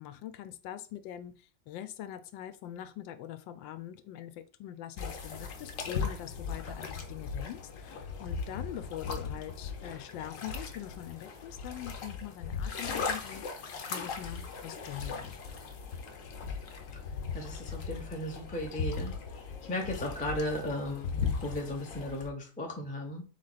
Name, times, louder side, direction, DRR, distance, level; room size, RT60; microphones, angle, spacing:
voice 1, 0.0-15.3, left 11 dB, 80° left, 11 dB, 1.3 m, -43 dB
sound 1, 5.0-22.3, left 5 dB, 55° left, 1.0 m, -38 dB
voice 2, 17.3-19.1 19.7-23.2, left 1 dB, 15° left, 1 dB, 0.3 m, -36 dB
4.1 x 3.3 x 4.0 m, 0.35 s
omnidirectional pair, 2.0 m